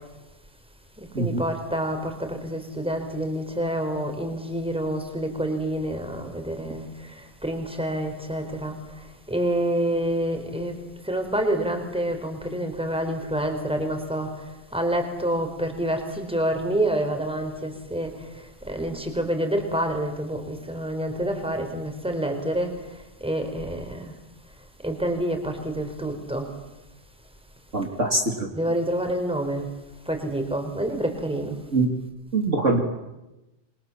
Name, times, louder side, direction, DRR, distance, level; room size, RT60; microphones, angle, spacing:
voice 1, 1.0-10.8 11.0-14.4 14.7-22.7 23.2-24.1 24.8-26.5 28.5-29.7 30.1-31.6, right 1 dB, 5° right, 5 dB, 4.3 m, -28 dB
voice 2, 27.7-28.5 31.7-31.9 32.3-32.8, right 2 dB, 45° right, 2 dB, 3.1 m, -23 dB
27.5 x 25.5 x 7.4 m, 1.0 s
omnidirectional pair, 1.8 m